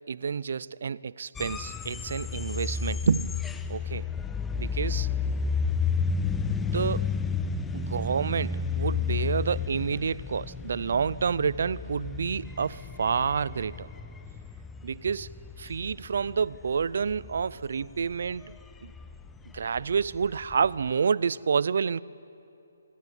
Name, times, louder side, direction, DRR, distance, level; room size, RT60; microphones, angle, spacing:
voice 1, 0.1-3.4 3.7-4.1 4.6-5.1 6.6-7.1 7.7-13.9 14.8-15.3 15.6-18.4 18.8-18.9 19.5-22.0, right 6 dB, 50° right, 22 dB, 0.5 m, -29 dB
sound 1, 1.3-20.9, left 5 dB, 5° left, 0.5 m, -32 dB
27.0 x 21.5 x 8.4 m, 3.0 s
hypercardioid pair, 175°, 0 cm